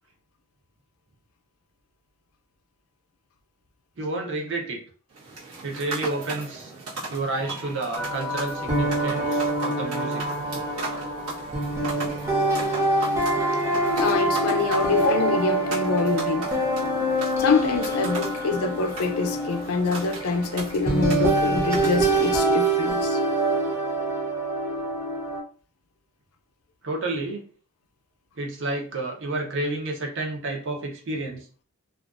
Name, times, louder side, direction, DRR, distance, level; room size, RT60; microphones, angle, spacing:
voice 1, 4.0-4.8 5.6-6.7 7.1-10.4 26.8-27.5 28.4-31.5, right 2 dB, 55° right, 0.6 m, -30 dB
sound 1, 5.1-22.4, right 3 dB, 90° right, 1.0 m, -37 dB
sound 2, 8.0-25.4, right 1 dB, 15° right, 0.5 m, -25 dB
voice 2, 14.0-16.5 17.4-23.2, left 4 dB, 75° left, 0.4 m, -25 dB
2.4 x 2.3 x 2.3 m
head